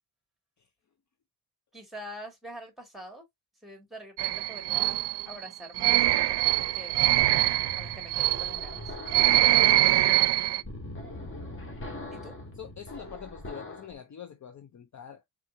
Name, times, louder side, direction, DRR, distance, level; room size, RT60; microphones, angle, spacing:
voice 1, 1.7-3.2 3.6-7.0 7.8-8.9 12.1-12.4, equal, ahead, 2.1 m, -45 dB
sound 1, 4.2-10.6, right 15 dB, 80° right, 0.5 m, -24 dB
sound 2, 7.2-13.9, left 1 dB, 30° left, 1.7 m, -42 dB
voice 2, 10.7-11.0 12.6-15.2, left 8 dB, 45° left, 0.6 m, -45 dB
4.3 x 3.8 x 2.6 m
wide cardioid pair, 120°, 40 cm